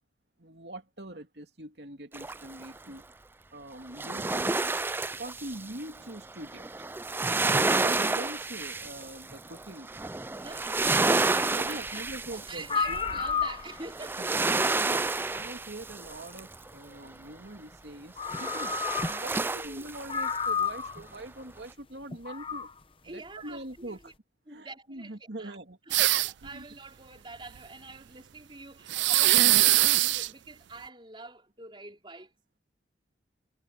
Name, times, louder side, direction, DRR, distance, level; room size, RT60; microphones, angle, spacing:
voice 1, 0.4-3.0 3.5-4.8 5.2-6.7 7.6-9.9 10.9-11.0 11.5-13.2 14.2-15.0 15.3-18.8 19.1-22.7 23.0-24.0 24.5-25.8 26.4-26.6, right 1 dB, 70° right, 2.6 m, -43 dB
sound 1, 2.1-2.8 3.9-16.7 18.2-20.4 20.8-20.9, right 3 dB, 10° right, 0.3 m, -30 dB
voice 2, 10.3-14.5 19.2-19.9 23.0-24.1 24.5-25.6 25.9-32.3, right 2 dB, 25° right, 4.3 m, -45 dB
sound 2, 12.3-12.4 12.6-14.0 15.4-15.5 17.7-17.8 18.2-19.4 19.7-19.8 20.1-21.1 22.1-22.7, left 6 dB, 30° left, 0.9 m, -31 dB
sound 3, 25.9-26.5 28.9-30.3, right 16 dB, 85° right, 0.4 m, -22 dB
head